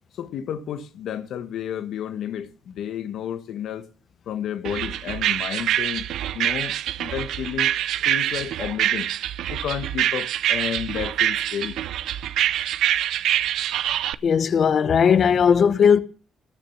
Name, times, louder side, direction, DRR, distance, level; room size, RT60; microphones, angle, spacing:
voice 1, 0.1-3.8 4.3-6.0 6.3-7.7 8.0-9.1 9.5-11.8, left 9 dB, 75° left, 1.4 m, -31 dB
sound 1, 4.6-14.1, right 12 dB, 80° right, 0.6 m, -25 dB
voice 2, 14.2-16.0, left 7 dB, 55° left, 1.1 m, -17 dB
19.5 x 7.1 x 7.1 m
cardioid pair, 90°, 0 cm